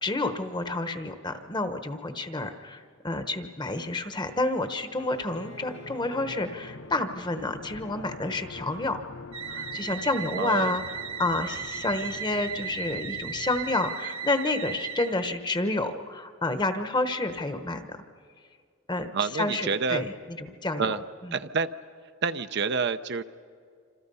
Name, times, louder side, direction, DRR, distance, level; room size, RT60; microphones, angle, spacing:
voice 1, 0.0-9.0 9.5-18.0 18.9-19.1 19.3-20.1 20.4-21.0, left 2 dB, 20° left, 8 dB, 1.1 m, -29 dB
Bowed string instrument, 4.9-8.6, right 3 dB, 80° left, 5.0 m, -51 dB
sound 1, 5.3-13.8, left 4 dB, 60° left, 0.6 m, -45 dB
sound 2, 9.3-15.4, right 7 dB, 70° right, 1.6 m, -36 dB
voice 2, 10.3-10.8 19.1-20.0 20.8-21.0 21.3-21.7 22.2-23.2, right 5 dB, 55° right, 10 dB, 0.6 m, -28 dB
27.0 x 27.0 x 5.5 m, 2.2 s
head